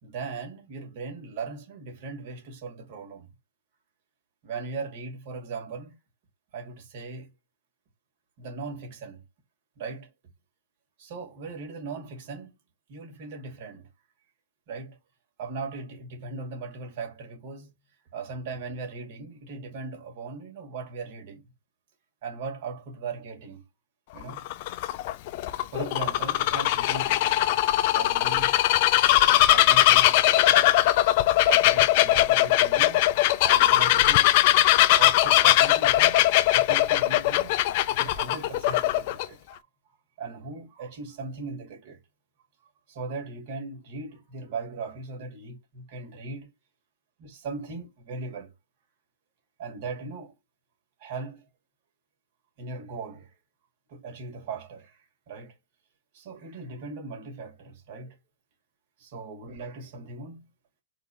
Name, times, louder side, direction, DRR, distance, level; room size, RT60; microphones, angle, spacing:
voice 1, 0.0-3.3 4.4-5.9 6.5-7.3 8.4-9.2 9.8-10.1 11.0-12.5 12.9-13.9 14.7-15.0 15.4-17.7 18.1-21.4 22.2-23.6 24.1-24.4 25.7-27.5 27.9-28.6 29.2-30.9 31.4-34.5 35.0-37.6 37.9-39.6 40.2-42.0 42.9-46.5 47.2-48.5 49.6-50.3 51.0-51.5 52.6-53.3 53.9-55.0 55.3-55.6 56.1-58.2 59.0-60.5, right 4 dB, 55° right, 2.2 m, -38 dB
Bird vocalization bird call bird song, 24.2-39.2, left 15 dB, 55° left, 0.4 m, -20 dB
4.1 x 2.8 x 3.5 m
hypercardioid pair, 115°, 0 cm